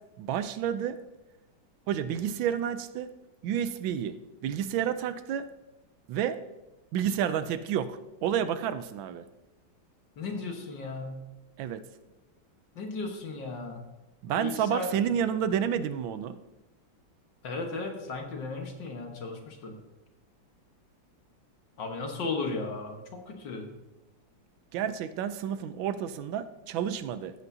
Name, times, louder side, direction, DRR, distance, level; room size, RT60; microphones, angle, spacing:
voice 1, 0.2-1.0 1.9-3.1 3.4-4.2 4.4-5.4 6.1-6.4 6.9-9.2 11.6-11.8 14.2-16.4 24.7-27.3, right 9 dB, 80° right, 12 dB, 1.3 m, -30 dB
voice 2, 10.2-11.2 12.8-13.8 14.4-14.9 17.4-19.8 21.8-23.7, left 3 dB, 65° left, 3 dB, 1.9 m, -35 dB
15.0 x 8.0 x 2.7 m, 0.99 s
omnidirectional pair, 2.2 m